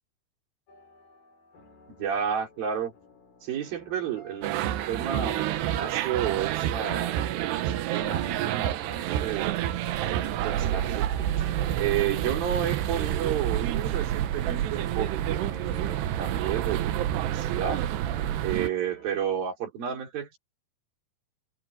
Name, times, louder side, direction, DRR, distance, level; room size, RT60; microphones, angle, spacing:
sound 1, 0.7-19.6, left 2 dB, 60° left, 7.7 m, -55 dB
voice 1, 2.0-2.9 3.4-7.2 7.5-9.6 10.0-11.1 11.4-17.9 18.4-20.4, right 9 dB, 60° right, 5.8 m, -32 dB
sound 2, 4.4-18.7, right 12 dB, 85° right, 3.3 m, -28 dB
omnidirectional pair, 4.7 m